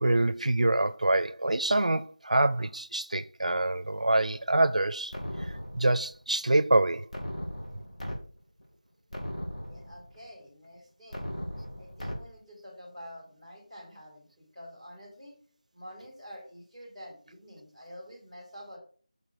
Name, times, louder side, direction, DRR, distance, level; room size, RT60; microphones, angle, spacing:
voice 1, 0.0-5.1 5.4-7.1, right 2 dB, 75° right, 0.5 m, -26 dB
sound 1, 5.1-6.1 7.1-8.1 8.6-8.7 9.1-10.1 11.1-12.1, equal, 75° left, 2.8 m, -37 dB
voice 2, 9.6-11.3 11.8-15.3 15.7-18.8, equal, 10° left, 3.0 m, -48 dB
6.2 x 5.9 x 4.6 m
figure-of-eight pair, 170°, 4 cm